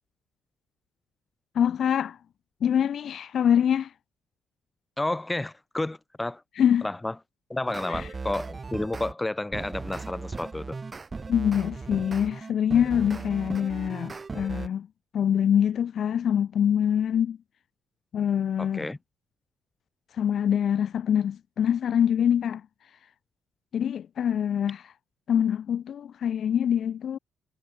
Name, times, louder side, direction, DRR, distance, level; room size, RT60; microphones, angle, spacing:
voice 1, 1.6-2.2 2.6-3.9 6.6-6.9 7.9-8.1 11.3-14.9 15.1-17.4 18.1-18.9 20.1-22.6 23.7-24.9 25.3-27.2, left 9 dB, 60° left, 0.4 m, -24 dB
voice 2, 5.0-6.4 6.8-7.1 7.5-10.8 18.6-19.0, left 2 dB, 15° left, 1.2 m, -31 dB
sound 1, 7.7-9.1 9.5-14.7, right 4 dB, 30° right, 1.2 m, -37 dB
cardioid pair, 90°, 0 cm